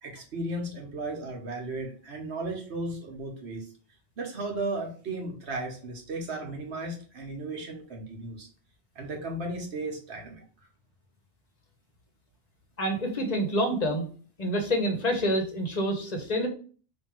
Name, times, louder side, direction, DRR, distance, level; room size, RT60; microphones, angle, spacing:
voice 1, 0.0-3.7 4.2-8.5 8.9-10.4, right 2 dB, 70° right, 2 dB, 1.3 m, -35 dB
voice 2, 12.8-14.1 14.4-16.5, equal, 40° left, 4 dB, 0.9 m, -27 dB
3.5 x 2.7 x 4.4 m, 0.41 s
omnidirectional pair, 1.2 m